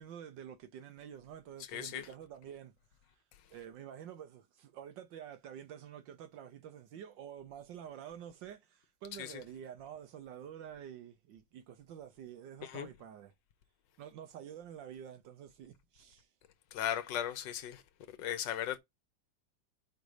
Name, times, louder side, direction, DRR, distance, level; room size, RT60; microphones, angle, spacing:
voice 1, 0.0-2.7 3.5-13.3 14.0-16.3, right 9 dB, 70° right, 1.4 m, -48 dB
voice 2, 1.7-2.1 9.2-9.4 12.6-12.9 16.7-17.8 18.2-18.8, left 10 dB, 70° left, 1.4 m, -37 dB
5.2 x 3.8 x 4.8 m
omnidirectional pair, 2.1 m